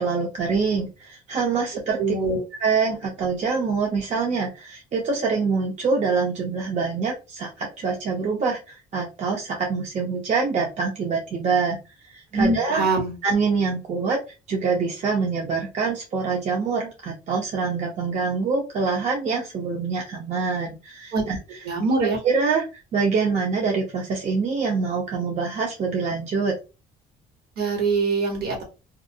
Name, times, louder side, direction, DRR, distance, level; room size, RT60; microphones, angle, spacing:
voice 1, 0.0-2.0 2.6-11.8 12.0-12.8 13.2-14.2 14.5-21.4 22.2-22.7 22.9-26.5, right 4 dB, 45° right, -1 dB, 0.6 m, -25 dB
voice 2, 2.0-2.4 12.3-13.1 21.1-21.2 21.6-22.2 27.6-28.6, right 3 dB, 65° right, 1 dB, 1.3 m, -23 dB
2.4 x 2.1 x 2.6 m, 0.30 s
cardioid pair, 110°, 17 cm